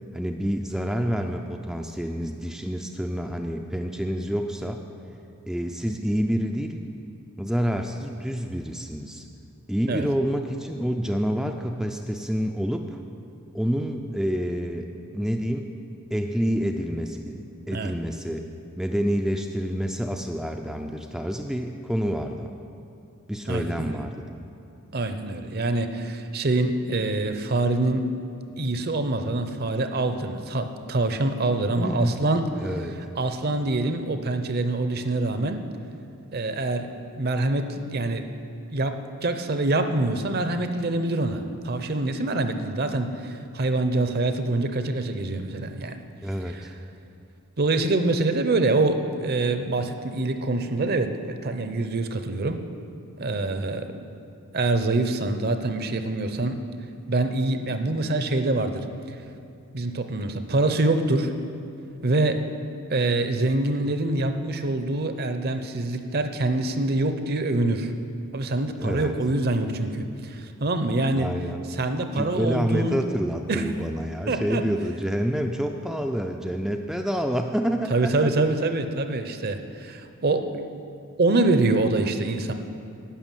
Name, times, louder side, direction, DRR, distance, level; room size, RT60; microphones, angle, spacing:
voice 1, 0.1-4.8 5.5-6.8 7.4-9.2 9.7-13.0 13.5-15.7 16.1-18.5 18.8-22.5 23.3-24.2 31.8-32.2 32.6-33.0 46.2-46.7 68.8-69.1 71.1-71.6 72.1-78.3, equal, ahead, 3 dB, 0.4 m, -28 dB
voice 2, 23.5-24.0 24.9-28.1 28.6-32.5 33.2-35.6 36.3-38.3 38.7-46.0 46.5-46.6 47.6-52.6 53.2-54.0 54.5-56.7 57.1-58.8 59.7-61.3 62.0-62.4 62.9-67.9 68.3-71.3 71.7-73.0 73.5-73.6 74.3-74.7 77.9-80.7 81.2-82.5, right 2 dB, 45° right, 8 dB, 0.7 m, -25 dB
11.5 x 6.6 x 9.0 m, 2.6 s
head